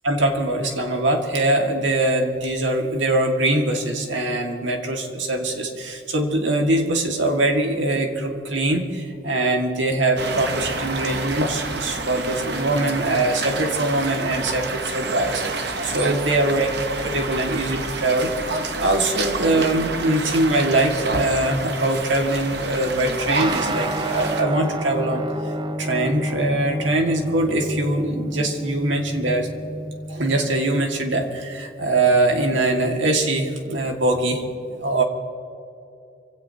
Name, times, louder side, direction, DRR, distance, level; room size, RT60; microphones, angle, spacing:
voice 1, 0.0-16.7 17.0-18.3 18.8-25.2 25.8-29.5 30.1-35.0, right 2 dB, 85° right, 2 dB, 2.1 m, -22 dB
sound 1, 10.2-24.4, right 3 dB, 60° right, 1.1 m, -28 dB
sound 2, 23.4-31.2, right 1 dB, 25° right, 0.7 m, -30 dB
25.5 x 17.0 x 2.9 m, 2.7 s
head